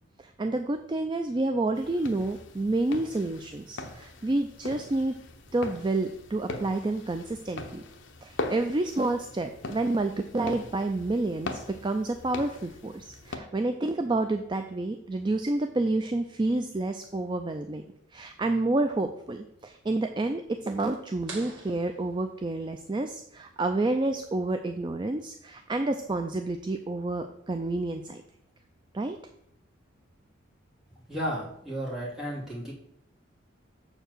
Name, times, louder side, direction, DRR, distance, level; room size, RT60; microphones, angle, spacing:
voice 1, 0.2-5.1 5.5-7.8 8.2-17.9 18.1-28.2 28.9-29.2, right 2 dB, 25° right, 7 dB, 0.4 m, -29 dB
sound 1, 1.7-13.4, left 2 dB, 65° left, 0.9 m, -41 dB
sound 2, 21.3-22.9, right 3 dB, 65° right, 1.9 m, -46 dB
voice 2, 31.1-32.7, equal, ahead, -7 dB, 2.7 m, -33 dB
7.0 x 4.5 x 6.7 m, 0.77 s
head